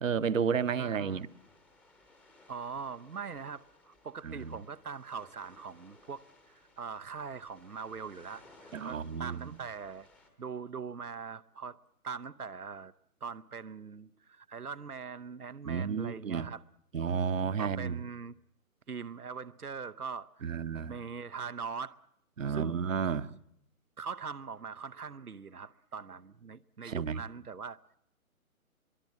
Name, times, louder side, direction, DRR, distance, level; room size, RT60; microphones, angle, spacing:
voice 1, 0.0-1.3 4.2-4.5 8.7-9.4 15.7-16.5 16.9-18.0 20.4-20.9 22.4-23.3 26.8-27.2, right 6 dB, 60° right, 1.0 m, -32 dB
voice 2, 0.8-1.2 2.5-10.1 10.4-11.8 12.0-12.9 13.2-16.6 17.4-18.4 18.9-20.5 20.9-22.0 22.5-22.8 24.0-28.0, right 5 dB, 90° right, 0.9 m, -42 dB
sound 1, 1.0-10.3, left 2 dB, 5° left, 0.8 m, -61 dB
23.5 x 23.0 x 7.5 m
figure-of-eight pair, 140°, 43 cm